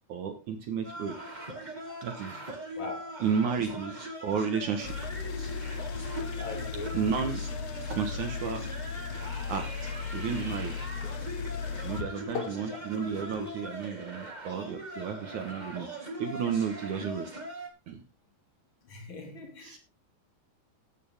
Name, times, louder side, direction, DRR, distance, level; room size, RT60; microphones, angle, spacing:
voice 1, 0.1-1.2 2.0-2.4 3.2-4.9 6.9-7.4 7.9-8.7 9.5-10.9 11.8-17.3 17.9-18.0 19.6-19.8, right 6 dB, 65° right, 2.1 m, -32 dB
sound 1, 0.8-17.7, right 1 dB, 20° right, 1.2 m, -41 dB
voice 2, 2.8-3.1 6.3-7.1 11.8-11.9 12.7-12.8 18.8-19.8, left 4 dB, 35° left, 2.8 m, -41 dB
sound 2, 4.8-13.5, left 6 dB, 75° left, 1.8 m, -36 dB
13.5 x 9.4 x 3.6 m
omnidirectional pair, 4.7 m